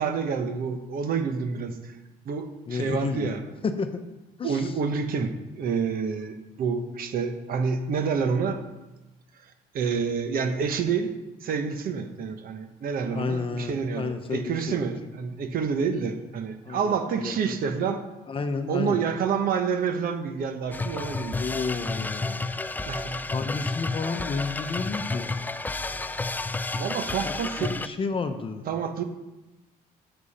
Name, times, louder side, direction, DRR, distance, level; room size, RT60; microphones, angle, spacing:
voice 1, 0.0-1.9 2.2-3.4 4.4-8.6 9.7-18.0 18.7-21.4 22.9-23.2 26.7-27.7 28.7-29.0, right 6 dB, 60° right, 7 dB, 1.2 m, -28 dB
voice 2, 2.7-4.0 4.4-4.7 13.1-14.9 16.6-17.6 18.3-19.0 21.3-22.5 23.3-25.4 27.2-28.6, left 4 dB, 30° left, 8 dB, 0.9 m, -31 dB
sound 1, 20.7-27.9, left 3 dB, 10° left, 0.3 m, -31 dB
10.5 x 7.9 x 4.3 m, 1.0 s
cardioid pair, 110°, 17 cm